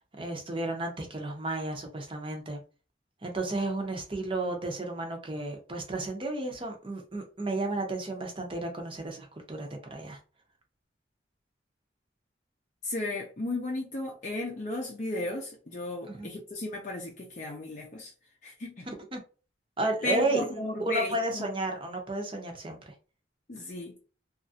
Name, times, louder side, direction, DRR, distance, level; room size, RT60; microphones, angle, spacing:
voice 1, 0.2-2.6 3.2-10.2 16.1-16.3 18.9-19.2 19.8-20.6 20.9-22.9, right 2 dB, 30° right, 0.6 m, -32 dB
voice 2, 12.8-18.1 18.4-18.9 20.0-21.5 23.5-24.0, left 2 dB, 40° left, 0.5 m, -34 dB
3.0 x 2.4 x 2.7 m
head